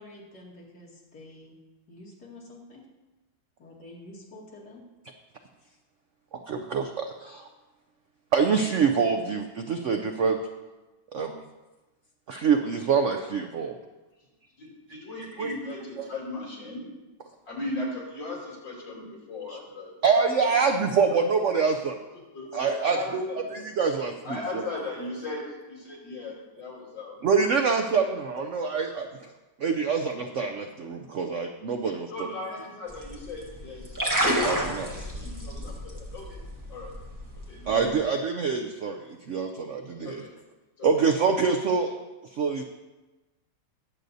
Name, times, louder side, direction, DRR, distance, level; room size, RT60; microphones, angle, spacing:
voice 1, 0.0-1.6 1.9-2.8 3.6-4.8, left 2 dB, 60° left, -4 dB, 2.8 m, -48 dB
voice 2, 6.3-7.5 8.3-10.4 11.1-11.4 12.3-13.8 15.4-15.6 16.0-16.1 19.5-19.6 20.0-22.0 22.5-23.2 23.5-24.6 27.2-29.3 29.6-32.1 34.4-34.9 37.7-40.2 40.8-41.9 42.3-42.6, right 5 dB, 70° right, 5 dB, 0.7 m, -25 dB
voice 3, 14.6-16.9 17.5-20.3 21.1-21.2 22.3-23.4 24.2-27.2 28.3-28.4 32.1-36.4 36.7-36.9 37.5-37.9 40.0-40.3 40.8-40.9, left 2 dB, 75° left, -3 dB, 4.1 m, -38 dB
sound 1, 32.9-37.9, equal, 10° right, 1.2 m, -31 dB
19.5 x 7.8 x 2.7 m, 1.1 s
omnidirectional pair, 2.0 m